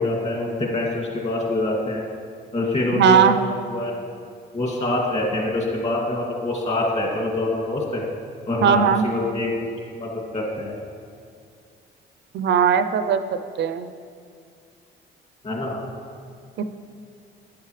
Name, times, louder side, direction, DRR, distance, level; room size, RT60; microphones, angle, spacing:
voice 1, 0.0-2.0 2.5-3.9 4.5-8.0 8.5-10.7 15.4-15.8, left 2 dB, 35° left, -2 dB, 2.3 m, -25 dB
voice 2, 2.9-3.4 8.6-9.1 12.3-13.2 13.6-13.9 16.6-16.7, right 7 dB, 65° right, 10 dB, 0.5 m, -18 dB
10.5 x 8.5 x 3.2 m, 2.2 s
cardioid pair, 90°, 20 cm